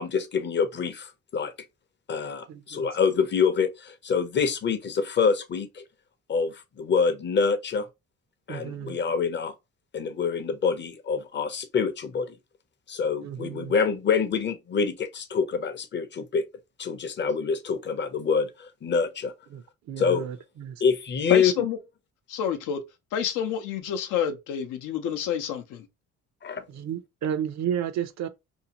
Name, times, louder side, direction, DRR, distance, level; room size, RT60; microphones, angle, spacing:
voice 1, 0.0-1.5 2.1-5.8 6.3-7.9 8.5-9.5 9.9-12.3 12.9-16.5 16.8-19.3 20.0-20.3 20.8-21.7 26.4-26.6, left 5 dB, 35° left, 0.6 m, -26 dB
voice 2, 2.5-2.9 8.5-9.0 13.2-13.7 19.5-19.6 19.9-20.8 26.7-28.3, right 9 dB, 65° right, 0.5 m, -32 dB
voice 3, 21.3-21.8 22.3-22.8 23.1-25.9, left 8 dB, 90° left, 0.6 m, -28 dB
2.7 x 2.4 x 2.8 m
cardioid pair, 90°, 30 cm